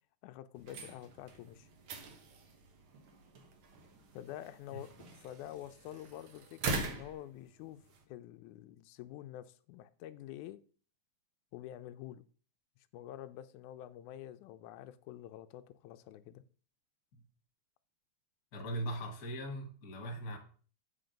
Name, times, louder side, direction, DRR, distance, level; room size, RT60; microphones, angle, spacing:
voice 1, 0.2-1.7 4.1-4.9 5.2-7.8 8.1-10.6 11.5-12.2 12.9-16.4, left 12 dB, 80° left, 1.9 m, -47 dB
sound 1, 0.5-8.0, right 3 dB, 60° right, 1.5 m, -43 dB
voice 2, 18.5-20.4, right 1 dB, 40° left, 1.6 m, -39 dB
7.8 x 4.5 x 5.1 m
omnidirectional pair, 3.5 m